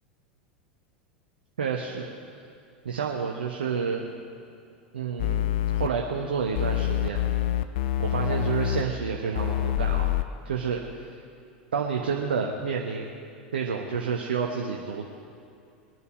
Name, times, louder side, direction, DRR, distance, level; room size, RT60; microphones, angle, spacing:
voice 1, 1.6-2.1 2.8-4.1 4.9-7.2 8.0-10.2 10.4-11.1 11.7-13.1 13.5-15.1, right 6 dB, 70° right, 1 dB, 1.0 m, -29 dB
sound 1, 5.2-5.9 6.6-8.8 9.4-10.2, left 12 dB, 55° left, 0.6 m, -26 dB
21.5 x 9.7 x 5.1 m, 2.6 s
figure-of-eight pair, 85°, 6 cm